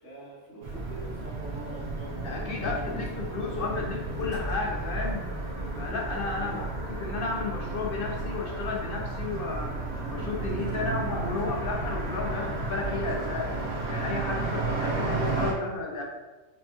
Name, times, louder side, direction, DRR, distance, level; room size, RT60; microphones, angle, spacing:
voice 1, 0.0-2.2 6.3-6.7 14.8-15.1, right 2 dB, 80° left, -7 dB, 1.5 m, -44 dB
sound 1, 0.6-15.5, right 3 dB, 60° right, 1.1 m, -33 dB
voice 2, 2.2-5.2 5.8-9.7 10.1-13.5 13.9-16.0, left 3 dB, 60° left, 0 dB, 0.6 m, -33 dB
Motor vehicle (road), 3.0-14.1, right 2 dB, 80° right, 1.8 m, -42 dB
5.2 x 2.2 x 2.9 m, 1.2 s
omnidirectional pair, 1.2 m